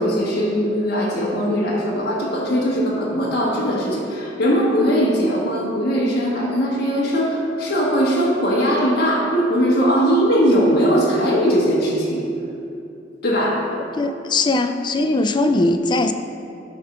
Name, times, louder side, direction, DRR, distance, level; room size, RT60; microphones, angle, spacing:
voice 1, 0.0-12.2 13.2-13.7, equal, 60° left, -5 dB, 1.5 m, -20 dB
voice 2, 14.0-16.1, left 2 dB, 25° left, 8 dB, 0.3 m, -20 dB
10.0 x 3.7 x 6.5 m, 2.7 s
head